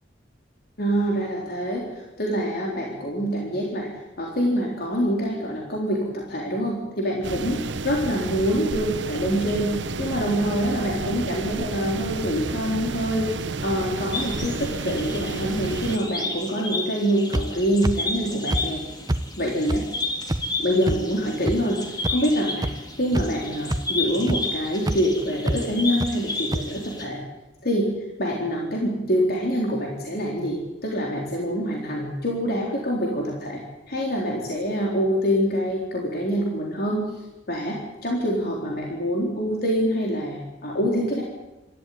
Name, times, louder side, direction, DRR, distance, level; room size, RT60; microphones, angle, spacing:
voice 1, 0.8-3.9 4.2-18.8 19.4-19.8 20.6-21.8 22.1-22.7 23.0-27.2 27.6-27.9 28.2-33.6 33.9-37.0 37.5-41.2, equal, 60° left, -2 dB, 3.9 m, -25 dB
sound 1, 7.2-16.0, right 3 dB, 80° right, 1.0 m, -31 dB
sound 2, 14.1-27.0, left 2 dB, 25° left, 3.4 m, -32 dB
sound 3, 17.3-17.4 17.8-17.9 18.5-18.6 19.1-19.2 19.7-19.8 20.3-20.4 20.9-21.0 21.5-21.6 22.0-22.1 22.6-22.7 23.1-23.4 23.7-23.8 24.3-24.4 24.9-25.0 25.5-25.6 26.0-26.1 26.5-26.6, right 1 dB, 20° right, 0.8 m, -24 dB
26.0 x 13.5 x 9.4 m, 1.0 s
head